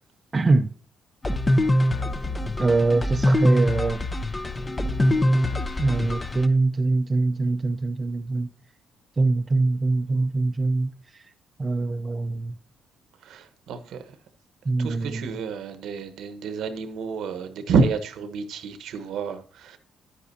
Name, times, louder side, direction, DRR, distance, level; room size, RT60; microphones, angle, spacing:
voice 1, 0.3-0.7 2.6-4.0 5.8-8.5 9.2-10.9 11.6-12.5 14.7-15.2, right 3 dB, 30° right, 0.6 m, -23 dB
sound 1, 1.2-6.5, left 1 dB, 20° left, 0.7 m, -23 dB
voice 2, 13.2-14.1 14.8-19.8, right 4 dB, 80° right, 1.1 m, -28 dB
10.0 x 8.4 x 2.8 m
cardioid pair, 90°, 0 cm